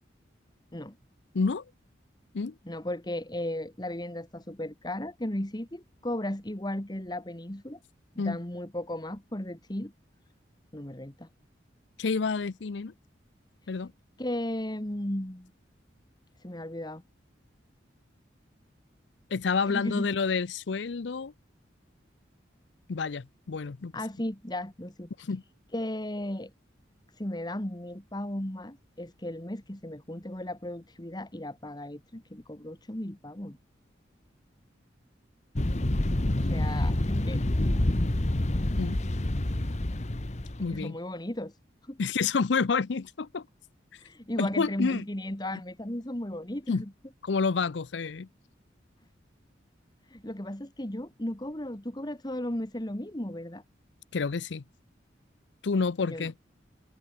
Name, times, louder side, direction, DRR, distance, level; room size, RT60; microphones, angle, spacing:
voice 1, 1.3-1.7 2.3-2.5 8.2-8.4 12.0-12.9 13.7-13.9 19.3-21.3 22.9-23.9 25.2-25.4 38.8-39.0 40.6-41.0 42.0-43.5 43.9-44.0 44.4-45.0 46.7-46.8 47.2-48.3 54.1-54.6 55.6-56.3, left 4 dB, 75° left, 0.6 m, -29 dB
voice 2, 2.7-7.8 8.2-9.9 10.7-11.3 13.6-13.8 14.2-15.5 16.4-17.0 19.7-20.1 23.9-25.1 25.7-26.5 27.1-33.6 36.4-37.4 40.6-41.6 41.8-42.0 44.0-46.9 50.0-53.6 56.0-56.3, left 1 dB, 20° left, 1.8 m, -35 dB
sound 1, 35.6-40.8, left 1 dB, 40° left, 1.2 m, -27 dB
head